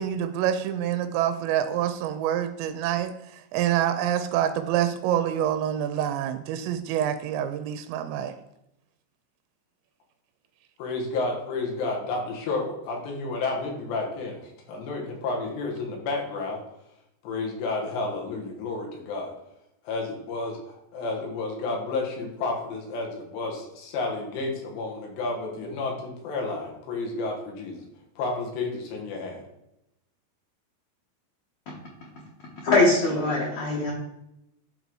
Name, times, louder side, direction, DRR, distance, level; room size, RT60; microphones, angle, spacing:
voice 1, 0.0-8.3, right 10 dB, 90° right, 8 dB, 2.8 m, -26 dB
voice 2, 10.8-16.6 17.2-19.3 19.8-27.8 28.2-29.4, left 3 dB, 75° left, 0 dB, 3.5 m, -31 dB
voice 3, 32.6-33.9, left 2 dB, 55° left, -5 dB, 2.1 m, -22 dB
11.0 x 4.0 x 4.7 m, 0.84 s
omnidirectional pair, 5.0 m